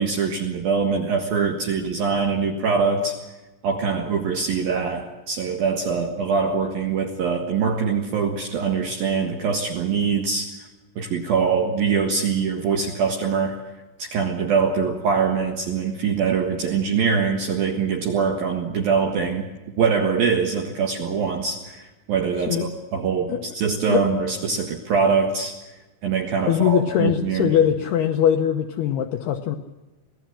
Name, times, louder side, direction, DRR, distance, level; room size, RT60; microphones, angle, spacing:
voice 1, 0.0-3.2 3.6-10.7 11.0-13.6 14.0-19.5 19.8-25.6 26.0-27.5, right 5 dB, 60° right, 2 dB, 2.8 m, -23 dB
voice 2, 26.4-29.6, left 10 dB, 80° left, 5 dB, 2.4 m, -21 dB
25.5 x 17.5 x 7.4 m, 1.1 s
omnidirectional pair, 5.8 m